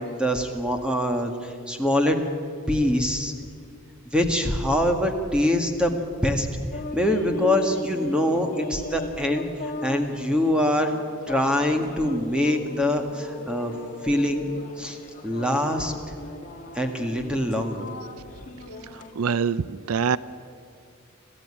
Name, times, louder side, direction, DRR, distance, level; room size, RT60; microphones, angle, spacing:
voice 1, 0.0-2.2 2.7-3.3 4.1-6.5 6.9-10.9 11.3-13.7 14.0-14.5 14.8-15.0 15.2-15.9 16.7-17.9, left 1 dB, 5° right, 5 dB, 1.8 m, -24 dB
sound 1, 6.7-19.1, left 2 dB, 35° left, 1.9 m, -37 dB
voice 2, 18.9-20.2, right 6 dB, 75° right, 18 dB, 0.5 m, -25 dB
26.0 x 15.0 x 9.9 m, 2.4 s
head